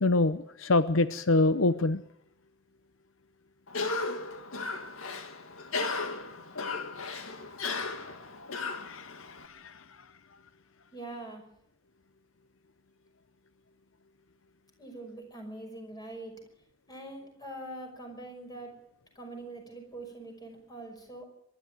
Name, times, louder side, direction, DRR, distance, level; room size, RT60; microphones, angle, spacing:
voice 1, 0.0-2.0 8.8-9.7, left 2 dB, 70° left, 12 dB, 0.7 m, -26 dB
Cough, 3.7-9.5, left 3 dB, 90° left, 2.0 m, -35 dB
voice 2, 10.9-11.4 14.8-16.4 16.9-18.8 19.2-21.3, right 2 dB, 20° left, 3 dB, 5.7 m, -43 dB
24.0 x 12.0 x 9.3 m, 0.74 s
head